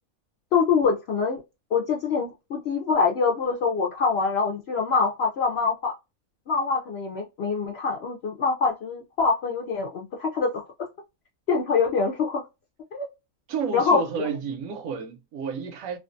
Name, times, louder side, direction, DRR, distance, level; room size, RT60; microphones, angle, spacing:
voice 1, 0.5-1.4 1.7-5.9 6.5-10.6 11.5-12.4 12.9-13.1 13.7-14.3, left 5 dB, 65° left, 0.6 m, -24 dB
voice 2, 13.5-16.0, right 6 dB, 75° right, 0.9 m, -31 dB
2.5 x 2.3 x 2.4 m
omnidirectional pair, 1.5 m